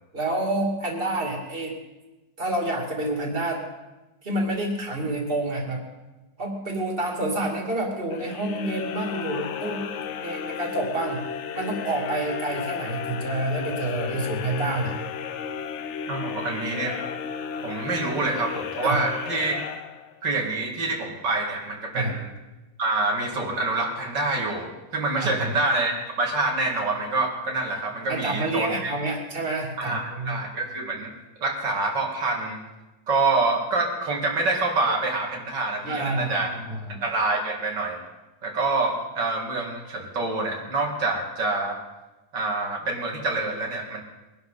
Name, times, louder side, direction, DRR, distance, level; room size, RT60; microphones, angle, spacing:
voice 1, 0.1-1.8 2.4-3.6 4.2-5.8 6.4-9.9 10.2-11.2 11.5-14.9 18.8-19.0 21.9-22.1 25.2-25.3 28.1-30.4 35.8-37.0, right 2 dB, 30° right, 0 dB, 2.9 m, -28 dB
sound 1, 8.1-20.4, left 7 dB, 65° left, 0.7 m, -34 dB
voice 2, 16.1-17.0 17.6-19.5 20.2-22.3 22.8-28.9 29.8-32.6 33.1-36.5 36.9-38.0 38.4-41.8 42.3-44.0, right 3 dB, 75° right, 1 dB, 2.9 m, -26 dB
23.0 x 11.5 x 4.0 m, 1.1 s
omnidirectional pair, 1.9 m